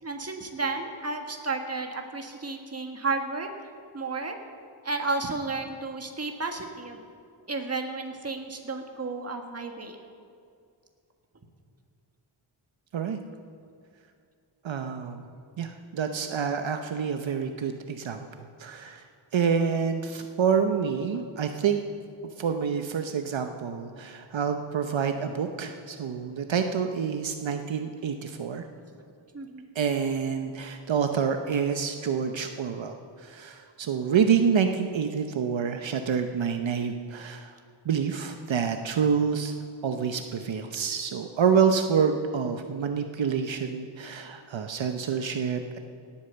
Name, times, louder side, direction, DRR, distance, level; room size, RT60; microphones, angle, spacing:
voice 1, 0.0-3.7 3.9-4.4 4.8-7.0 7.5-10.0 29.3-29.6, right 3 dB, 30° right, 4 dB, 1.6 m, -32 dB
voice 2, 14.6-15.2 15.6-18.2 18.6-19.0 19.3-21.8 22.4-28.6 29.7-37.5 37.8-39.5 39.8-45.8, right 6 dB, 70° right, 6 dB, 0.9 m, -27 dB
18.0 x 8.7 x 6.9 m, 2.3 s
wide cardioid pair, 110°, 47 cm